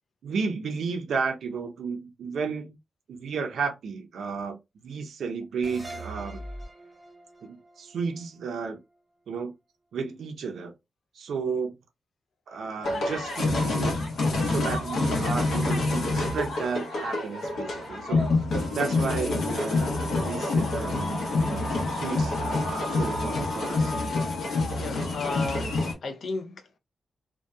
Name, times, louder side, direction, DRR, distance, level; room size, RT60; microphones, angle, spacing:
voice 1, 0.2-2.8 3.1-6.4 7.4-8.8 9.3-9.5 9.9-10.7 11.1-11.8 12.5-14.0 14.4-18.3 18.7-20.0 20.2-23.9, right 5 dB, 80° right, 0.6 m, -33 dB
sound 1, 5.6-8.9, right 1 dB, 20° right, 0.8 m, -42 dB
sound 2, 12.8-25.9, left 2 dB, 75° left, 0.8 m, -27 dB
voice 2, 24.8-26.8, left 3 dB, 55° left, 0.4 m, -34 dB
2.7 x 2.2 x 2.3 m
wide cardioid pair, 145°, 0 cm